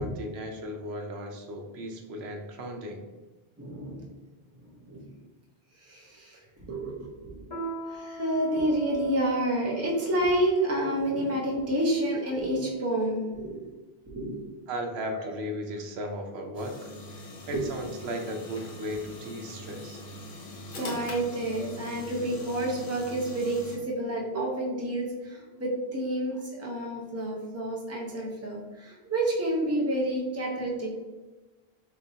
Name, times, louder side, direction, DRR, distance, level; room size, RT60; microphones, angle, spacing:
voice 1, 0.0-3.0 14.7-20.0, equal, 85° right, 3 dB, 0.9 m, -36 dB
voice 2, 3.6-4.1 4.6-5.1 5.7-6.9 7.2-7.4 7.8-13.6 14.1-14.4 15.1-15.3 17.5-17.6 20.7-30.9, right 1 dB, 15° right, -3 dB, 0.7 m, -29 dB
Piano, 7.5-12.5, right 2 dB, 30° left, 0.9 m, -43 dB
sound 1, 16.5-23.8, left 1 dB, 55° left, 1.0 m, -42 dB
4.2 x 3.1 x 2.7 m, 1.2 s
omnidirectional pair, 1.1 m